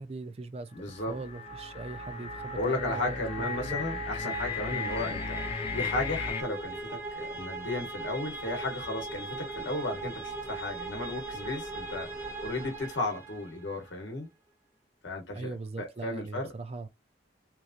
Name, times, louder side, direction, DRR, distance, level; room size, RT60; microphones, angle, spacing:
voice 1, 0.0-3.8 15.3-16.9, right 3 dB, 35° right, 0.4 m, -40 dB
voice 2, 0.7-1.1 2.6-5.4 5.7-12.1 12.4-14.3 15.0-16.5, left 2 dB, 80° left, 0.9 m, -34 dB
sound 1, 0.8-6.4, left 5 dB, 35° left, 0.4 m, -36 dB
sound 2, 0.9-13.7, right 3 dB, 15° right, 0.9 m, -40 dB
3.0 x 2.5 x 2.4 m
head